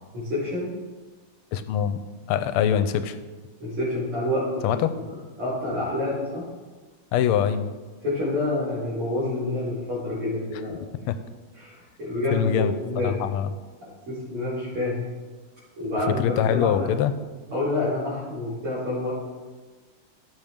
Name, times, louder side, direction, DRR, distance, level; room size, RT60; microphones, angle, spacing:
voice 1, 0.1-0.7 3.6-4.8 5.1-6.5 8.0-10.8 11.5-13.1 13.8-15.1 15.8-17.0 17.5-19.1, left 2 dB, 75° right, -11 dB, 4.9 m, -28 dB
voice 2, 1.5-2.0 2.3-3.2 4.6-4.9 7.1-7.7 11.1-11.2 12.3-12.7 13.0-13.5 16.2-17.1, left 9 dB, 90° left, 11 dB, 1.5 m, -23 dB
15.5 x 7.4 x 3.6 m, 1.3 s
omnidirectional pair, 2.4 m